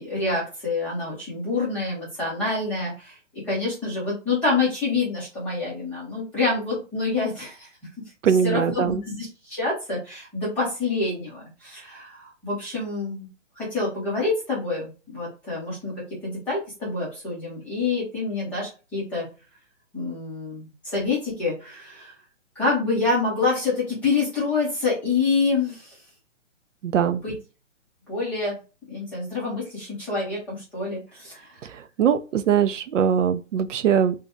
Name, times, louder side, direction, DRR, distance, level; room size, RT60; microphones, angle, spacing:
voice 1, 0.0-7.7 8.2-13.3 13.6-15.9 16.2-19.3 19.9-22.1 22.6-25.9 27.1-27.4 28.1-28.6 28.9-31.6, left 3 dB, 5° left, 0.5 m, -27 dB
voice 2, 8.2-9.0 26.8-27.2 32.0-34.1, right 8 dB, 75° right, 0.5 m, -21 dB
2.7 x 2.5 x 3.4 m
hypercardioid pair, 145°, 38 cm